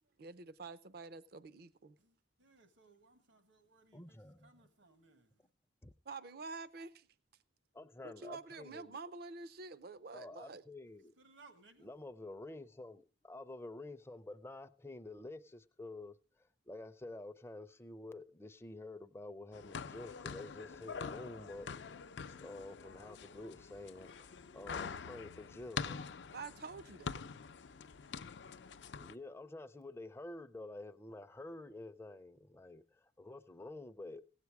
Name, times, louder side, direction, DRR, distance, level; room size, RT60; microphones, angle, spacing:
voice 1, 0.2-2.0 6.1-7.1 8.0-10.6 26.3-27.2, right 4 dB, 55° right, 0.5 m, -48 dB
voice 2, 2.4-4.2 4.4-5.3 11.2-11.9, right 3 dB, 80° right, 1.5 m, -63 dB
voice 3, 3.9-4.5 5.8-5.9 7.7-9.0 10.1-11.1 11.8-22.0 22.3-26.1 29.0-34.3, left 2 dB, 15° left, 0.5 m, -49 dB
sound 1, 19.5-29.1, left 6 dB, 70° left, 0.5 m, -45 dB
16.5 x 8.3 x 4.7 m
head